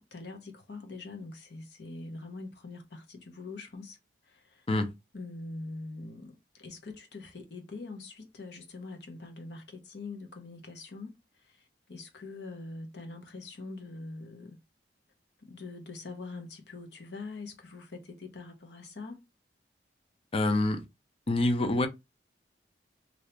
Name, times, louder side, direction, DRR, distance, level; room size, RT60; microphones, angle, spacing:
voice 1, 0.0-4.0 4.2-4.7 5.1-14.6 15.4-19.2, left 3 dB, 70° left, 1.0 m, -43 dB
voice 2, 20.3-20.8 21.3-21.9, left 2 dB, 35° left, 0.5 m, -26 dB
2.8 x 2.7 x 3.3 m
head